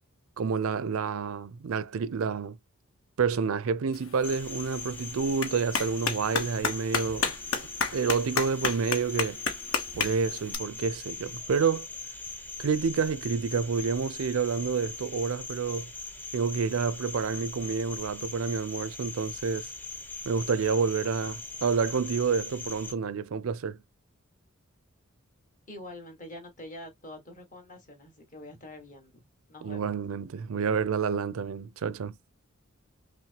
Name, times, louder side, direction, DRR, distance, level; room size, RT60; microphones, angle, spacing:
voice 1, 0.4-2.6 3.2-7.3 7.9-9.4 10.0-11.9 12.6-15.9 16.3-19.7 20.3-23.8 29.6-32.2, right 5 dB, 75° right, 0.4 m, -29 dB
Clapping, 3.9-10.5, left 5 dB, 65° left, 1.0 m, -33 dB
Cricket, 4.2-22.9, left 3 dB, 10° left, 0.6 m, -41 dB
voice 2, 25.7-29.2 29.5-30.0, left 1 dB, 40° left, 1.5 m, -45 dB
5.8 x 2.1 x 2.8 m
head